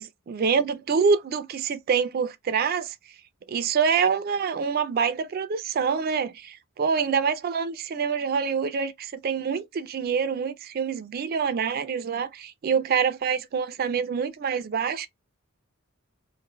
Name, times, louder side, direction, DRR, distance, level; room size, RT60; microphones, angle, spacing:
voice 1, 0.0-2.9 3.5-15.1, right 6 dB, 45° right, 0.4 m, -26 dB
2.5 x 2.5 x 2.9 m
head